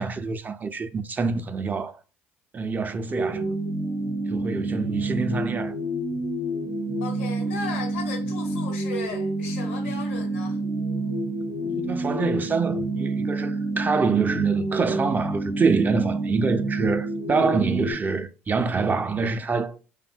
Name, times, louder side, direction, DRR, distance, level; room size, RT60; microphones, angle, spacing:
voice 1, 0.0-1.9 2.5-3.5 4.3-5.7 11.6-19.8, right 4 dB, 25° right, 0.4 m, -26 dB
sound 1, 3.1-17.9, right 2 dB, 90° right, 0.6 m, -28 dB
voice 2, 7.0-10.6, left 5 dB, 80° left, 0.6 m, -36 dB
2.6 x 2.1 x 2.4 m
hypercardioid pair, 55°, 7 cm